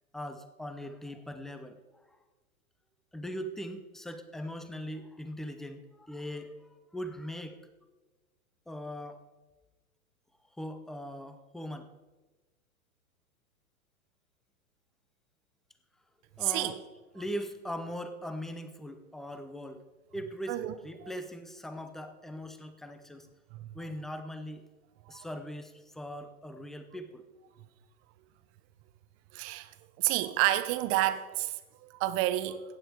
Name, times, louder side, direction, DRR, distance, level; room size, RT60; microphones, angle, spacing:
voice 1, 0.1-1.8 3.1-7.6 8.7-9.2 10.6-11.9 16.4-16.8 17.1-19.8 20.1-20.6 20.8-23.3 23.7-24.6 25.1-27.3, equal, ahead, 0.5 m, -40 dB
voice 2, 16.4-16.8 20.5-20.7 23.5-23.7 25.1-25.3 29.3-29.7 30.0-32.6, right 15 dB, 30° right, 0.8 m, -30 dB
15.0 x 9.1 x 4.5 m
hypercardioid pair, 120°, 43 cm